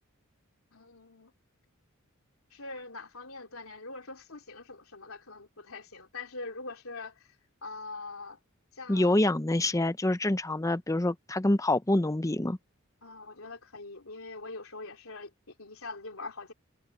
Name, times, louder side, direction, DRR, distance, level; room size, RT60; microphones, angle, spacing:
voice 1, 0.7-1.3 2.5-7.3 7.6-8.4 8.7-9.2 13.0-16.5, left 3 dB, 80° left, 3.1 m, -43 dB
voice 2, 8.9-12.6, left 1 dB, 15° left, 0.7 m, -26 dB
head